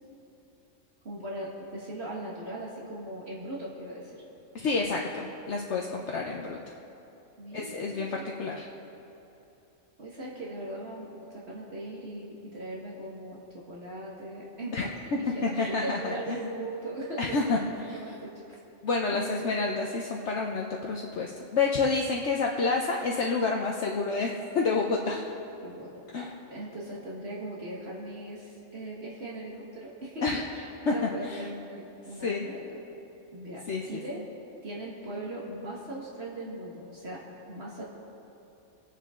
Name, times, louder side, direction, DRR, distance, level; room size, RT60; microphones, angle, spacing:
voice 1, 1.0-4.2 5.9-6.3 7.4-8.5 10.0-14.9 15.3-17.6 17.9-18.6 19.1-19.5 25.6-30.3 30.5-32.8 33.3-34.2 34.6-37.8, right 1 dB, 55° right, -5 dB, 1.9 m, -39 dB
voice 2, 4.5-6.8 7.5-8.7 14.7-16.4 17.2-18.0 18.8-25.3 26.1-26.3 30.2-30.4 30.9-31.0 31.2-31.4 32.2-32.4 33.7-34.0, left 4 dB, 65° left, 0 dB, 1.1 m, -29 dB
23.0 x 9.3 x 3.7 m, 2.9 s
omnidirectional pair, 1.3 m